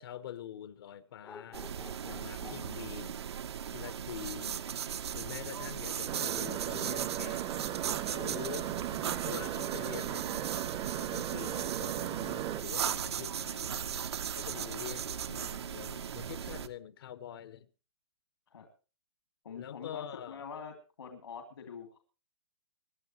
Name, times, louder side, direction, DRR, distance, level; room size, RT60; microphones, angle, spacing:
voice 1, 0.0-1.7 2.1-3.2 3.7-4.6 5.1-7.5 8.1-8.8 9.2-10.5 10.9-14.0 14.4-17.7 19.6-20.4, left 10 dB, 60° left, 0.9 m, -45 dB
sound 1, 1.2-3.0 6.0-6.2, left 5 dB, 10° left, 0.5 m, -51 dB
sound 2, 1.5-16.7, right 8 dB, 75° right, 1.0 m, -37 dB
voice 2, 2.0-3.0 14.5-14.7 18.5-18.6 19.4-22.0, left 6 dB, 80° left, 2.7 m, -46 dB
sound 3, 6.1-12.6, right 13 dB, 25° right, 0.7 m, -37 dB
24.0 x 10.5 x 3.0 m
hypercardioid pair, 140°, 14 cm